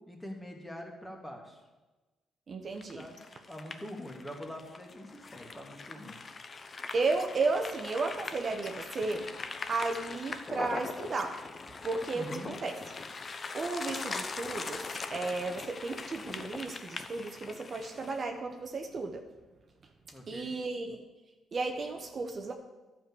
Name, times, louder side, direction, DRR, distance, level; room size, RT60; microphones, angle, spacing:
voice 1, 0.1-1.6 2.9-6.2 12.1-12.5 20.1-20.5, left 1 dB, 10° left, 1 dB, 2.1 m, -44 dB
voice 2, 2.5-3.1 6.9-9.3 9.7-11.4 11.8-13.0 13.5-19.2 20.3-21.0 21.5-22.5, right 3 dB, 45° right, 4 dB, 1.0 m, -34 dB
sound 1, 2.8-18.2, left 4 dB, 35° left, 0.7 m, -41 dB
11.5 x 5.1 x 7.0 m, 1.2 s
cardioid pair, 90°, 0 cm